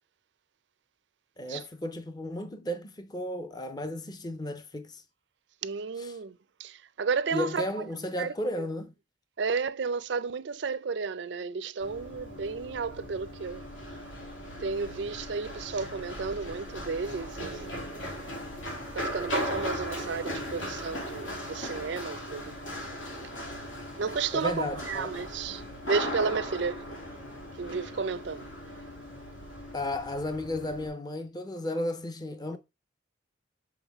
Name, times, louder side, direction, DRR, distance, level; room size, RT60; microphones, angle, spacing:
voice 1, 1.4-5.0 6.0-6.1 7.3-8.9 24.3-25.1 29.7-32.6, left 1 dB, 20° left, 0.6 m, -34 dB
voice 2, 5.6-7.7 8.2-8.7 9.4-13.6 14.6-17.7 18.9-22.6 24.0-26.9 27.6-28.5, right 5 dB, 70° right, 0.5 m, -32 dB
Run, 11.8-30.9, equal, 90° left, 2.9 m, -38 dB
7.2 x 3.8 x 3.5 m
head